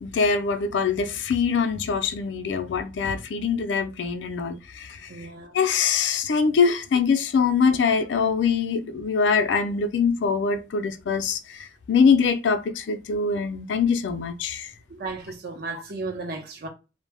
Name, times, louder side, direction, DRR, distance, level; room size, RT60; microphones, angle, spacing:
voice 1, 0.0-5.1 5.5-14.7 15.7-15.8, left 5 dB, 90° left, 0.4 m, -23 dB
voice 2, 5.1-5.5 14.9-16.7, right 3 dB, 60° right, 0.7 m, -34 dB
2.1 x 2.0 x 3.3 m
head